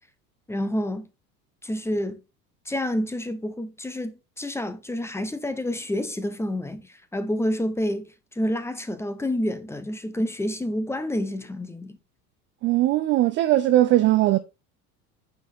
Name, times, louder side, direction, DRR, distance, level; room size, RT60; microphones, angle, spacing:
voice 1, 0.5-1.1 1.6-2.2 2.7-12.0, left 1 dB, 5° left, 0.9 m, -28 dB
voice 2, 12.6-14.4, right 15 dB, 25° right, 0.4 m, -19 dB
9.0 x 4.6 x 4.3 m
figure-of-eight pair, 75°, 45 cm